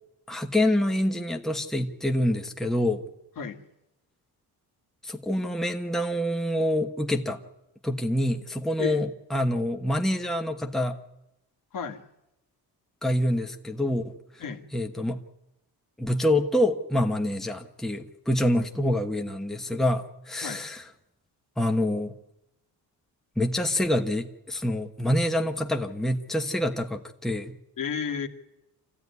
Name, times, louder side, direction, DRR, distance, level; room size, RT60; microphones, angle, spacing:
voice 1, 0.3-3.0 5.0-7.4 7.8-11.0 13.0-14.1 14.7-15.2 16.0-20.8 21.6-22.1 23.4-27.5, left 1 dB, ahead, 4 dB, 1.1 m, -26 dB
voice 2, 11.7-12.0 14.4-14.7 20.4-20.6 27.8-28.3, left 6 dB, 55° left, 6 dB, 2.0 m, -32 dB
26.0 x 15.0 x 9.6 m, 0.91 s
cardioid pair, 135°, 38 cm